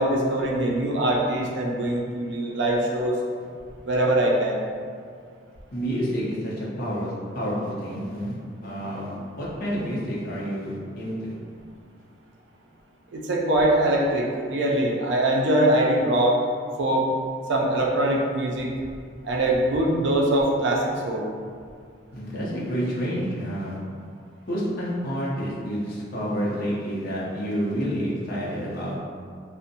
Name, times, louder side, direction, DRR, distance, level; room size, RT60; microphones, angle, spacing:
voice 1, 0.0-3.2 3.8-4.7 13.1-16.4 16.8-17.1 17.5-18.7 19.2-21.3, right 1 dB, 70° right, -2 dB, 0.4 m, -22 dB
voice 2, 5.7-8.4 8.6-11.3 22.1-23.8 24.5-28.9, equal, 55° left, -6 dB, 0.6 m, -29 dB
2.5 x 2.1 x 2.6 m, 2.1 s
head